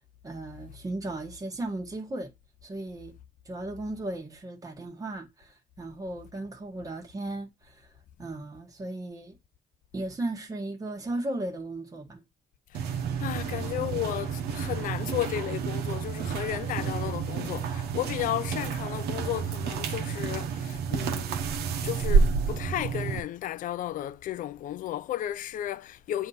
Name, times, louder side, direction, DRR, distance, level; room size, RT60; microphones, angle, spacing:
voice 1, 0.2-2.3 2.6-3.1 3.4-7.9 8.2-9.4 9.9-12.2, right 2 dB, 20° right, 1.3 m, -36 dB
voice 2, 12.7-21.3 21.8-26.3, left 12 dB, 55° left, 0.4 m, -34 dB
sound 1, 12.7-23.2, right 6 dB, 70° right, 0.9 m, -29 dB
7.7 x 2.8 x 5.5 m
cardioid pair, 110°, 17 cm